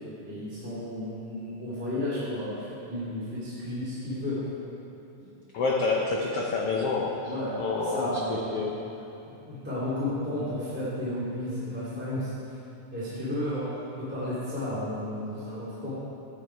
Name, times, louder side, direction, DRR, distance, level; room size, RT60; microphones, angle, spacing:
voice 1, 0.2-4.4 7.2-8.5 9.2-12.3 12.9-15.9, left 1 dB, 5° right, -12 dB, 2.6 m, -33 dB
voice 2, 5.5-7.3 7.6-8.7, left 3 dB, 90° left, -1 dB, 1.3 m, -28 dB
13.0 x 10.0 x 4.7 m, 2.9 s
omnidirectional pair, 3.9 m